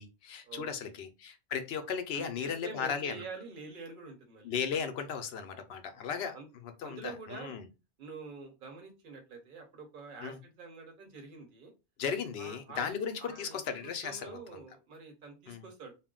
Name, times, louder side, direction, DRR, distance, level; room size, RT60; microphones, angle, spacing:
voice 1, 0.0-3.2 4.4-6.4 6.6-7.7 10.2-10.4 12.0-14.6 15.5-15.7, left 7 dB, 75° left, 0.8 m, -36 dB
voice 2, 2.1-4.5 6.1-6.5 6.8-7.6 8.0-11.7 12.4-15.9, right 4 dB, 50° right, 1.0 m, -46 dB
2.5 x 2.1 x 3.6 m
omnidirectional pair, 1.1 m